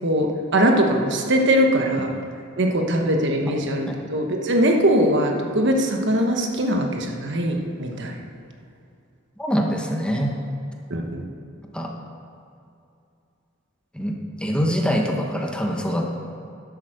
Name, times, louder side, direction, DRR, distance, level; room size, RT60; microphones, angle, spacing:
voice 1, 0.0-2.2 2.6-8.1 10.9-11.2, equal, 60° right, 2 dB, 1.2 m, -21 dB
voice 2, 9.4-10.3 11.7-11.9 13.9-14.1 14.4-16.0, equal, 5° left, 0 dB, 1.1 m, -23 dB
11.0 x 8.1 x 6.6 m, 2.5 s
head